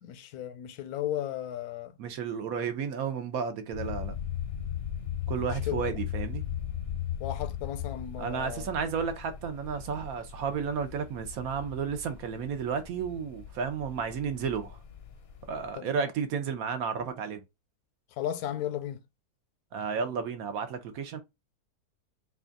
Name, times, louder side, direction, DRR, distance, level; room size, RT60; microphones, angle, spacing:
voice 1, 0.0-2.0 5.4-6.0 7.2-8.7 15.7-16.1 18.2-19.0, left 11 dB, 80° left, 1.1 m, -35 dB
voice 2, 2.0-4.1 5.3-6.4 8.2-14.8 15.5-17.4 19.7-21.2, right 6 dB, 70° right, 1.1 m, -32 dB
sound 1, 3.7-15.7, left 10 dB, 55° left, 0.8 m, -38 dB
4.2 x 2.3 x 3.8 m
omnidirectional pair, 1.6 m